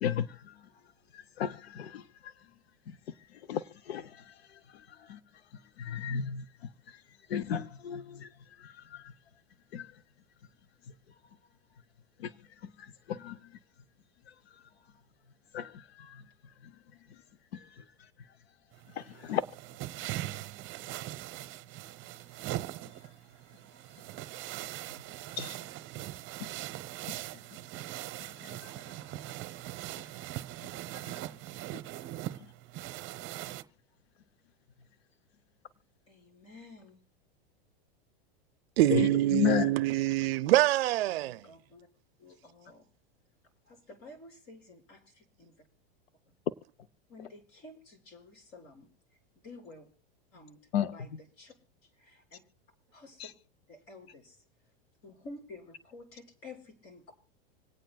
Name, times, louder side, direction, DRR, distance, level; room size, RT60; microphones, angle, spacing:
voice 1, 0.0-0.6 1.1-2.3 3.3-4.3 4.9-5.2 5.8-6.4 6.9-7.0 7.3-8.3 8.6-9.1 9.7-9.9 12.2-12.3 13.1-13.4 15.5-16.2 17.5-17.8 19.0-19.4 25.4-25.6 26.4-26.5 28.4-28.7 31.1-31.2 38.9-39.7 50.7-50.9 53.2-53.3, left 9 dB, 85° left, 0.7 m, -34 dB
sound 1, 18.7-33.6, right 15 dB, 40° right, 0.8 m, -41 dB
voice 2, 30.8-31.6 36.1-37.0 41.1-41.9 42.2-42.8 43.6-45.6 46.3-46.4 47.1-49.9 50.3-50.6 50.9-51.1 51.4-51.5 51.8-52.4 52.9-53.3 53.7-54.4 55.0-57.1, left 2 dB, 45° left, 5.3 m, -51 dB
voice 3, 38.8-41.4, right 16 dB, 75° right, 0.5 m, -25 dB
26.5 x 9.2 x 2.3 m
hypercardioid pair, 110°, 31 cm